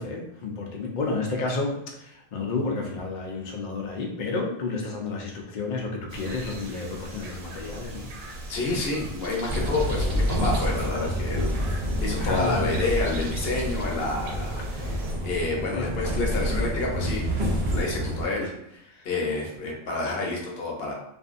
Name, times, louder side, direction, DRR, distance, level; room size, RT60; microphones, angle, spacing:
voice 1, 0.0-8.1 12.2-13.0 15.7-15.9 18.9-19.1, left 3 dB, 90° left, 0 dB, 0.4 m, -31 dB
sound 1, 6.1-15.1, right 2 dB, 80° right, 1.0 m, -40 dB
voice 2, 8.5-11.5 12.0-17.3 17.7-20.9, left 2 dB, 55° left, -1 dB, 0.8 m, -29 dB
sound 2, 9.5-18.2, equal, 60° right, 0.8 m, -28 dB
2.5 x 2.5 x 2.4 m, 0.79 s
omnidirectional pair, 1.4 m